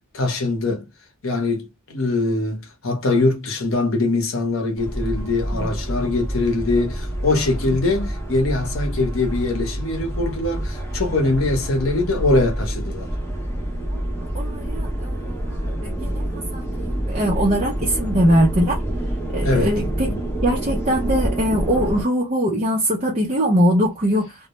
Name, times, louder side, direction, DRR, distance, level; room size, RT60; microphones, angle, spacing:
voice 1, 0.1-0.9 1.2-13.1 19.4-20.3, left 2 dB, 65° left, 0.7 m, -22 dB
sound 1, 4.8-22.0, right 1 dB, 10° left, 0.7 m, -27 dB
voice 2, 14.3-18.8 19.3-20.1 20.4-24.3, equal, 30° right, 0.5 m, -22 dB
2.1 x 2.0 x 2.8 m
head